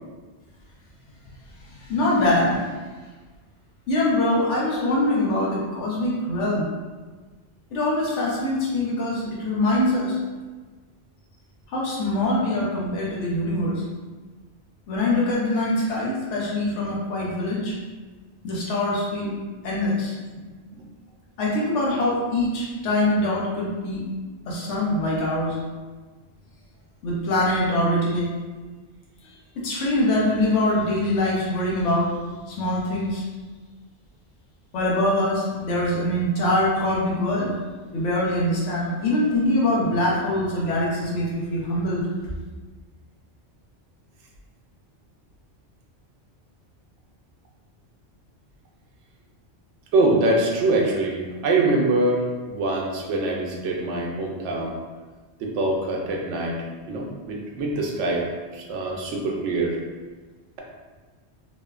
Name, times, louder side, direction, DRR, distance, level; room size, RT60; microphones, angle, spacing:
voice 1, 1.9-2.6 3.9-6.7 7.7-10.2 11.7-13.8 14.9-17.7 18.4-19.3 19.6-20.1 21.4-24.0 24.5-25.6 27.0-28.3 29.6-32.1 32.5-33.2 34.7-37.5 37.9-42.1, left 1 dB, 85° left, -5 dB, 1.1 m, -23 dB
voice 2, 49.9-54.7 55.4-56.6 56.9-59.8, right 2 dB, 90° right, -1 dB, 0.9 m, -24 dB
3.0 x 2.1 x 2.3 m, 1.3 s
omnidirectional pair, 1.2 m